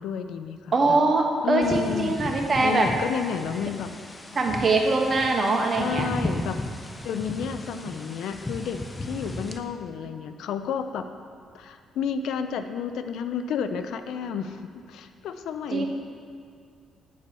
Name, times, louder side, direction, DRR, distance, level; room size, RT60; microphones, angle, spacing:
voice 1, 0.0-1.0 1.4-2.2 2.6-3.9 5.7-6.6 7.0-11.1 11.5-14.6 14.9-15.9, left 7 dB, 80° left, 9 dB, 0.4 m, -31 dB
voice 2, 0.7-2.9 4.3-6.1 15.7-15.9, right 3 dB, 40° right, 2 dB, 1.0 m, -22 dB
sound 1, 1.6-9.6, left 1 dB, 20° left, 0.6 m, -35 dB
9.3 x 4.3 x 5.3 m, 2.3 s
cardioid pair, 90°, 0 cm